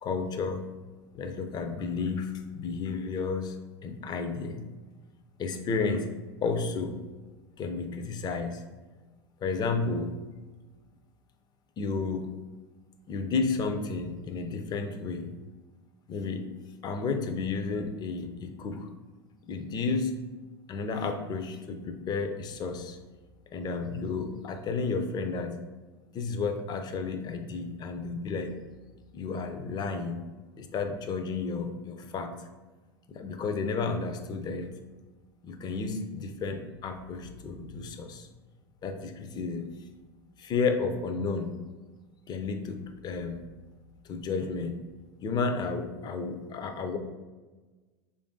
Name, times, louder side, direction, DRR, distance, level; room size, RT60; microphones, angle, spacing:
voice 1, 0.0-0.6 1.1-3.6 3.8-4.6 5.4-6.1 6.4-7.0 7.6-8.6 9.4-10.1 11.8-12.3 13.1-15.3 16.1-16.5 16.8-18.9 19.4-20.2 20.7-23.0 23.5-25.6 26.1-28.6 29.1-30.2 30.6-32.3 33.1-34.7 35.4-38.3 38.8-39.7 40.4-41.6 42.3-43.4 44.0-44.8 45.2-47.0, left 4 dB, 30° left, 6 dB, 0.5 m, -32 dB
3.3 x 2.5 x 3.7 m, 1.3 s
hypercardioid pair, 100°, 13 cm